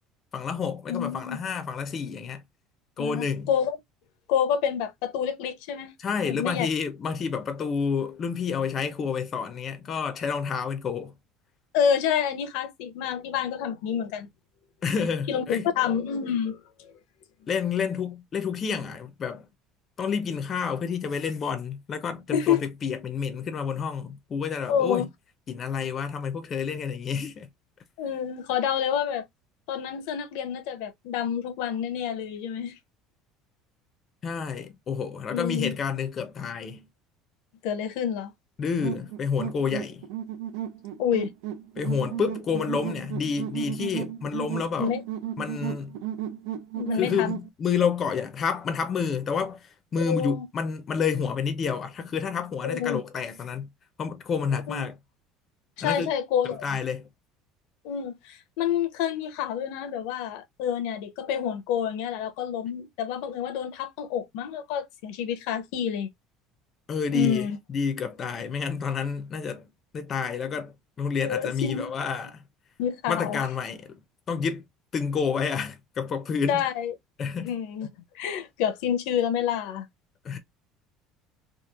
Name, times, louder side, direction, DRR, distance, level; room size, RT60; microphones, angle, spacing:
voice 1, 0.3-2.4 3.0-3.5 6.0-11.1 14.8-15.7 17.5-19.5 20.0-25.1 25.5-27.5 34.2-36.9 38.6-40.0 41.8-44.9 45.4-45.9 46.9-53.7 54.0-55.0 55.8-56.1 56.6-57.1 66.9-69.6 69.9-72.3 73.1-74.0 74.3-74.6 74.9-76.6 77.2-77.5 80.2-80.4, left 6 dB, 30° left, 0.5 m, -29 dB
voice 2, 0.9-1.4 3.0-3.8 4.3-5.9 6.2-6.7 11.7-14.3 15.3-16.6 22.3-22.6 24.7-25.0 28.0-29.3 29.7-32.8 35.3-35.7 37.6-38.3 41.0-41.3 44.8-45.0 46.8-47.3 50.0-50.5 52.6-53.0 54.7-54.9 55.8-56.8 57.8-66.1 67.1-67.6 71.2-71.9 72.8-73.5 76.5-76.9 77.4-77.9 78.1-79.9, left 8 dB, 80° left, 0.6 m, -28 dB
sound 1, 38.8-47.5, right 10 dB, 85° right, 0.6 m, -34 dB
2.9 x 2.4 x 2.3 m
cardioid pair, 150°, 0 cm